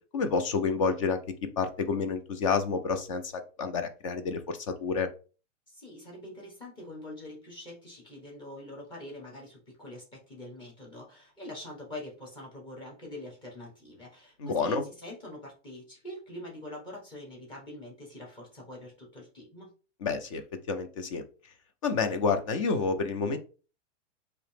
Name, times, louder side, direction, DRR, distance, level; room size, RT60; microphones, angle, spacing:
voice 1, 0.1-5.1 14.4-14.8 20.0-20.4 20.7-21.2 21.8-23.4, left 5 dB, 30° left, 8 dB, 0.4 m, -29 dB
voice 2, 5.7-19.7, left 1 dB, 15° left, -2 dB, 1.1 m, -44 dB
4.0 x 2.8 x 3.3 m, 0.36 s
supercardioid pair, 165°, 36 cm